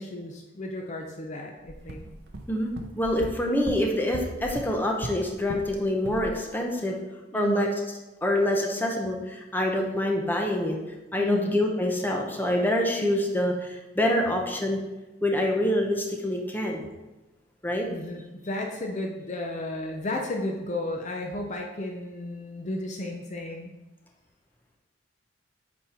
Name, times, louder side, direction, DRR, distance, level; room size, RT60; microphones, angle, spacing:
voice 1, 0.0-2.0 7.3-7.7 11.2-11.6 17.9-23.7, left 1 dB, 40° left, 2 dB, 0.6 m, -33 dB
sound 1, 1.7-5.8 6.0-6.3, right 2 dB, 55° right, 0.7 m, -38 dB
voice 2, 2.5-7.0 7.3-7.7 8.2-10.8 11.1-14.8 15.2-16.8 17.6-17.9, left 1 dB, 10° left, 1 dB, 0.9 m, -26 dB
8.4 x 4.4 x 4.3 m, 1.1 s
head